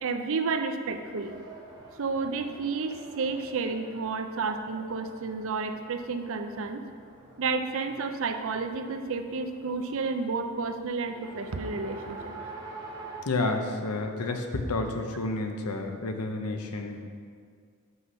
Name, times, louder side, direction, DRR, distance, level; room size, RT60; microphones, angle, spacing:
voice 1, 0.0-1.4 2.0-6.8 7.4-12.3, right 4 dB, 60° right, 7 dB, 0.5 m, -31 dB
Race car auto racing, 0.8-13.2, right 3 dB, 20° right, 1.0 m, -47 dB
voice 2, 13.3-17.0, left 2 dB, 85° left, 5 dB, 0.8 m, -30 dB
5.9 x 5.6 x 5.5 m, 2.1 s
head